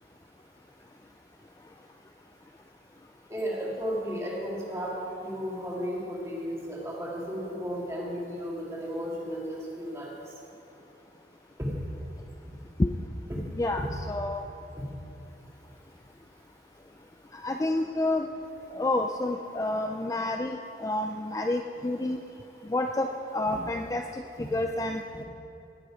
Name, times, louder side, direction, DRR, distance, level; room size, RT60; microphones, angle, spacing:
voice 1, 3.3-10.1 11.6-11.7 13.3-13.4 13.8-13.9 14.8-14.9 23.5-23.6 24.4-24.5, equal, 15° right, -4 dB, 2.1 m, -34 dB
voice 2, 13.6-14.4 17.3-18.3 18.7-22.2 22.6-25.2, left 2 dB, 20° left, 4 dB, 0.4 m, -29 dB
17.5 x 6.8 x 5.0 m, 3.0 s
head